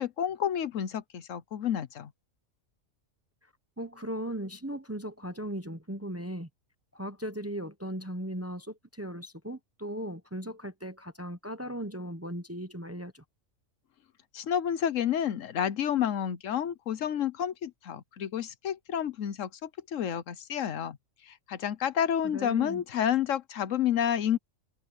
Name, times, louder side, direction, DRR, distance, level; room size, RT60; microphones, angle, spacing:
voice 1, 0.0-2.1 14.3-21.0 21.3-24.4, left 9 dB, 70° left, 1.2 m, -30 dB
voice 2, 3.8-6.5 6.9-13.2 22.2-22.8, equal, 15° right, 0.8 m, -37 dB
omnidirectional pair, 1.4 m